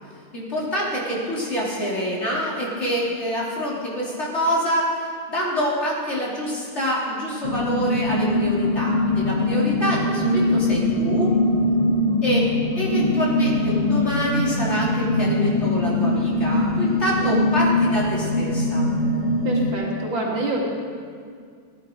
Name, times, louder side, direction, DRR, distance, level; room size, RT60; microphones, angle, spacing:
voice 1, 0.3-4.9 5.3-11.3 12.2-12.5 12.8-18.8, equal, 35° left, -6 dB, 3.5 m, -26 dB
sound 1, 7.4-19.7, left 2 dB, 50° left, 0.5 m, -22 dB
voice 2, 19.4-20.6, right 2 dB, 80° right, -3 dB, 3.1 m, -27 dB
19.0 x 11.5 x 4.5 m, 2.1 s
omnidirectional pair, 2.0 m